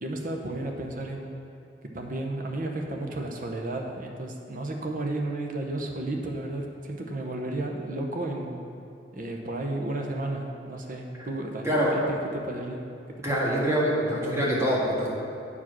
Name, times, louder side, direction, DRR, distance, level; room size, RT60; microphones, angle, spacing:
voice 1, 0.0-1.3 1.8-8.6 9.1-12.8 13.2-13.4, right 2 dB, 50° right, 2 dB, 0.9 m, -33 dB
voice 2, 13.2-15.1, equal, 15° right, -6 dB, 1.6 m, -25 dB
8.3 x 4.9 x 6.0 m, 2.6 s
head